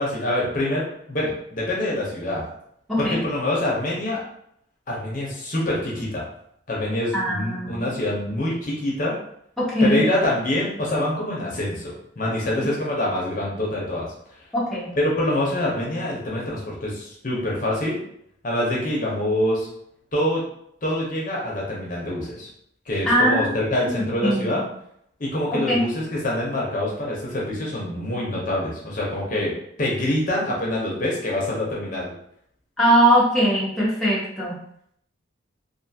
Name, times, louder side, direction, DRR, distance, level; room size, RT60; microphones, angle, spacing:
voice 1, 0.0-2.4 3.0-4.2 4.9-6.2 6.7-9.1 9.8-14.1 15.0-18.0 18.4-19.7 20.1-20.4 20.8-22.5 22.9-24.6 25.2-32.1, left 1 dB, 40° left, -4 dB, 0.7 m, -25 dB
voice 2, 7.1-7.9 9.6-10.0 14.5-14.9 23.0-23.5 23.8-24.0 24.2-24.6 25.5-25.8 32.8-34.6, equal, ahead, -8 dB, 0.7 m, -21 dB
2.5 x 2.4 x 2.7 m, 0.70 s
head